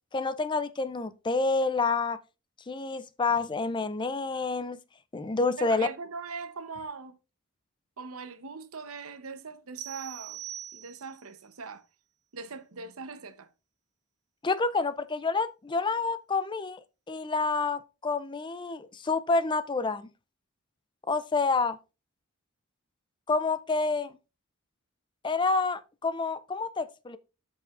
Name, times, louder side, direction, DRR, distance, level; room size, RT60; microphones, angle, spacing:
voice 1, 0.1-2.2 2.7-4.8 5.1-5.9 14.4-16.8 17.1-20.1 21.1-21.8 23.3-24.2 25.2-27.2, left 3 dB, 20° left, 0.4 m, -28 dB
voice 2, 5.6-7.1 8.0-10.4 10.7-11.8 12.3-13.5, right 4 dB, 85° right, 0.9 m, -41 dB
sound 1, 9.8-11.3, right 12 dB, 55° right, 1.3 m, -42 dB
13.5 x 4.8 x 2.5 m
head